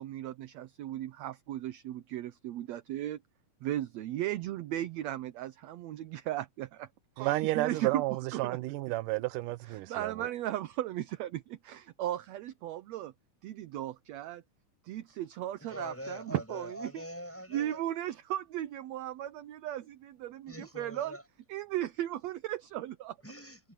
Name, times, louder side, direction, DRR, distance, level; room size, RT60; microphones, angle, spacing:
voice 1, 0.0-3.2 3.6-6.9 7.2-8.0 8.3-8.6 9.7-13.1 13.4-14.4 14.8-17.0 17.5-21.2 21.5-23.2, right 13 dB, 70° right, 1.7 m, -36 dB
voice 2, 7.2-10.3, right 18 dB, 85° right, 2.3 m, -31 dB
voice 3, 15.6-17.8 20.5-21.2 23.2-23.7, equal, 5° left, 7.6 m, -43 dB
omnidirectional pair, 3.7 m